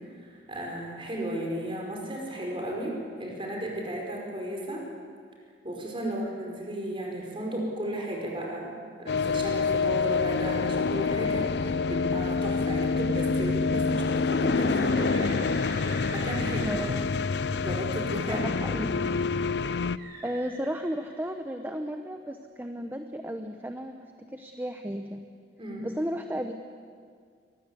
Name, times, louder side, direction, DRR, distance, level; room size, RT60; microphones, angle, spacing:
voice 1, 0.2-4.8 5.6-15.5 16.1-16.8 17.5-18.4 25.6-26.0, right 1 dB, 30° right, 0 dB, 5.0 m, -34 dB
sound 1, 9.1-20.0, left 4 dB, 65° left, 0.5 m, -27 dB
Bird, 14.4-18.2 19.9-21.7, right 2 dB, 60° right, 5.7 m, -45 dB
voice 2, 16.6-17.1 18.3-19.1 20.2-25.2 25.8-26.5, equal, 10° right, 6 dB, 0.8 m, -34 dB
23.0 x 19.5 x 8.3 m, 2.1 s
head